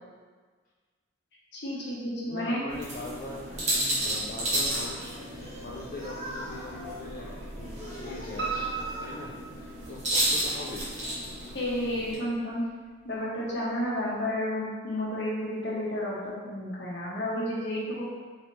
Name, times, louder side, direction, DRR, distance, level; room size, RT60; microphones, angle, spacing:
voice 1, 1.5-2.6 3.0-3.1 11.5-12.6 13.0-18.1, left 1 dB, 60° left, -5 dB, 1.0 m, -31 dB
voice 2, 2.3-3.6 3.9-8.7 9.0-10.9, left 2 dB, 40° left, -5 dB, 0.4 m, -41 dB
sound 1, 2.7-12.1, right 1 dB, 35° right, 1.1 m, -33 dB
Piano, 8.4-10.3 10.7-11.6 11.9-12.0 12.5-12.6 12.8-12.9, right 5 dB, 60° right, 0.8 m, -36 dB
3.2 x 3.1 x 4.0 m, 1.5 s
head